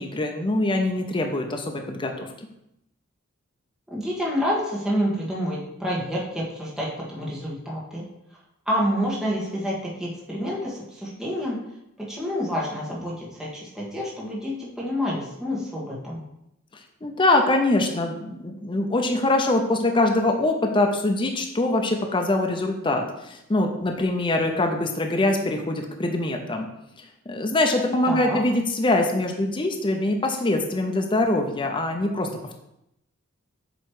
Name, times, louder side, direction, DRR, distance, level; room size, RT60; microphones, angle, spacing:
voice 1, 0.0-2.3 17.0-26.7 27.3-32.3, left 2 dB, 25° left, 3 dB, 0.6 m, -23 dB
voice 2, 3.9-8.0 8.7-11.6 12.1-16.2 28.0-28.4, equal, 5° right, -6 dB, 1.4 m, -28 dB
7.7 x 3.1 x 4.7 m, 0.82 s
head